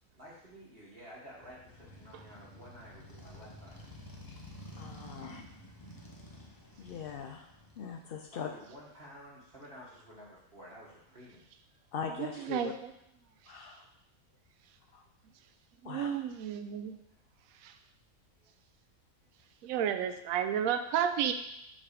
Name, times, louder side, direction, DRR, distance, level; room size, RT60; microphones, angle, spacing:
voice 1, 0.1-3.8 8.3-11.4 18.4-18.5, equal, 40° right, -7 dB, 1.5 m, -52 dB
Motorcycle, 1.3-8.0, equal, 20° left, 0.6 m, -51 dB
voice 2, 4.7-5.4 6.8-7.5 7.8-8.5 11.9-12.7 13.5-13.8 14.9-15.0 15.8-16.1, left 6 dB, 75° left, 3 dB, 0.5 m, -40 dB
voice 3, 12.2-12.9 15.8-16.9 17.6-17.8 19.6-21.3, right 9 dB, 75° right, 8 dB, 1.0 m, -32 dB
7.3 x 3.4 x 4.9 m, 0.77 s
omnidirectional pair, 1.5 m